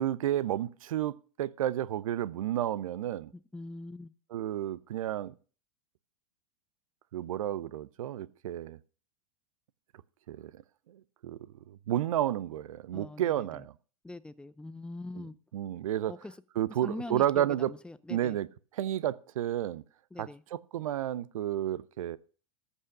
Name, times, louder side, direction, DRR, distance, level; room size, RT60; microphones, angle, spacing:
voice 1, 0.0-3.3 4.3-5.3 7.1-8.8 10.3-10.6 10.9-11.4 11.7-13.7 15.5-16.1 16.6-17.7 18.1-18.5 18.7-19.8 20.2-22.2, right 12 dB, 65° right, 0.6 m, -31 dB
voice 2, 3.3-4.1 12.9-13.6 14.0-15.3 16.1-16.3 16.8-18.4 20.1-20.4, left 2 dB, 5° left, 0.6 m, -42 dB
14.0 x 5.6 x 6.5 m
figure-of-eight pair, 90°, 19 cm